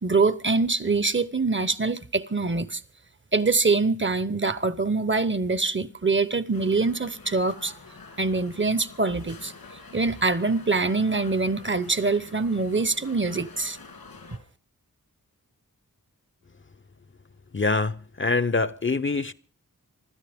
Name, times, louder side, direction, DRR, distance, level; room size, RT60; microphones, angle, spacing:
voice 1, 0.0-2.8 3.3-7.7 8.2-9.5 9.9-13.8, right 3 dB, 35° right, 0.9 m, -24 dB
sound 1, 6.5-14.4, left 4 dB, 85° left, 2.8 m, -47 dB
voice 2, 17.5-19.3, left 3 dB, 35° left, 0.7 m, -25 dB
26.0 x 12.5 x 3.5 m
cardioid pair, 45°, 35 cm